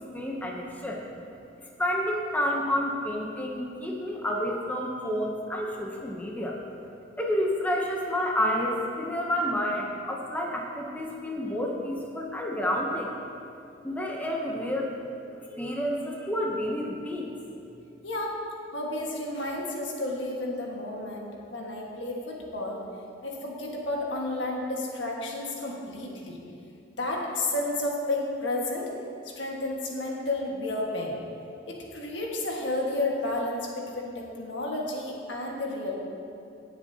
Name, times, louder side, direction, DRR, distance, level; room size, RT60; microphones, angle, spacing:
voice 1, 0.1-1.0 1.8-6.6 7.2-13.1 13.8-14.9 15.5-17.4, equal, 10° left, -1 dB, 0.7 m, -29 dB
voice 2, 18.0-18.4 18.7-22.8 23.2-26.4 27.0-28.9 29.2-31.2 31.7-33.7 33.9-36.0, left 2 dB, 70° left, -2 dB, 1.6 m, -31 dB
17.5 x 7.3 x 2.8 m, 2.6 s
head